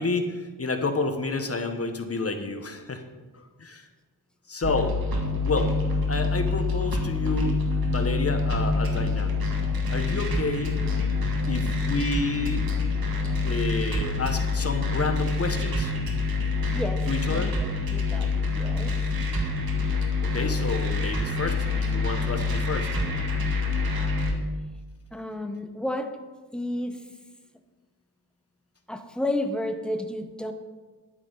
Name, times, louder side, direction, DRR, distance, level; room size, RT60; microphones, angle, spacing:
voice 1, 0.0-3.0 3.3-3.9 4.5-5.0 5.4-5.8 6.1-7.6 7.9-9.4 9.9-10.8 11.5-12.6 13.4-15.9 17.1-17.5 20.2-22.9, left 3 dB, 35° left, 6 dB, 1.3 m, -30 dB
sound 1, 4.6-24.3, left 3 dB, 65° right, 2.2 m, -26 dB
voice 2, 16.7-17.5 17.9-18.9 25.1-26.2 26.5-27.0 28.9-30.5, left 1 dB, ahead, 6 dB, 1.2 m, -31 dB
12.0 x 9.6 x 4.1 m, 1.3 s
cardioid pair, 70°, 39 cm